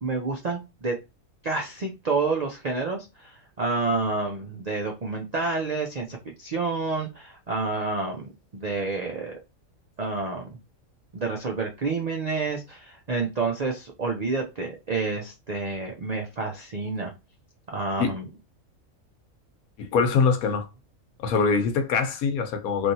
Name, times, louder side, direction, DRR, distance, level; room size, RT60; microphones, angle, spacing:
voice 1, 0.0-1.0 1.4-9.4 10.0-10.6 11.1-17.1 17.7-18.3, right 3 dB, 60° right, 0.4 m, -29 dB
voice 2, 19.8-20.7 21.2-22.9, left 5 dB, 85° left, 1.2 m, -23 dB
3.2 x 2.6 x 2.7 m
omnidirectional pair, 1.5 m